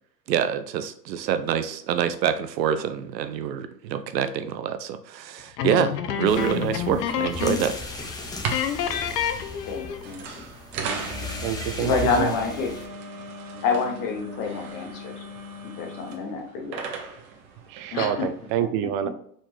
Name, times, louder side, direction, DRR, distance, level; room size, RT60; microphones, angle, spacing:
voice 1, 0.3-7.7, right 8 dB, 85° right, 0.7 m, -26 dB
sound 1, 5.6-7.8 8.0-8.2 8.5-10.1, left 9 dB, 80° left, 0.8 m, -28 dB
sound 2, 6.3-12.9, left 3 dB, 10° left, 0.6 m, -37 dB
sound 3, 8.2-18.5, right 3 dB, 55° right, 1.2 m, -37 dB
voice 2, 9.6-10.4 11.8-12.7 13.6-15.2 15.6-16.8 17.9-18.3, left 5 dB, 40° left, 1.3 m, -27 dB
voice 3, 11.4-12.3 17.7-19.1, right 10 dB, 35° right, 0.4 m, -27 dB
4.3 x 3.8 x 3.1 m
hypercardioid pair, 120°, 49 cm